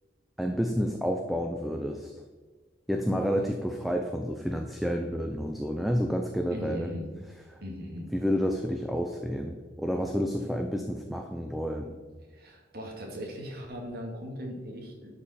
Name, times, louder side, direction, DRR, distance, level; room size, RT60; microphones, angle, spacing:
voice 1, 0.4-2.2 2.9-6.9 7.5-7.6 8.1-12.0, equal, ahead, 3 dB, 0.5 m, -30 dB
voice 2, 6.5-7.0 7.6-8.1 12.3-15.1, equal, 60° right, 0 dB, 2.0 m, -38 dB
11.5 x 5.3 x 4.3 m, 1.4 s
head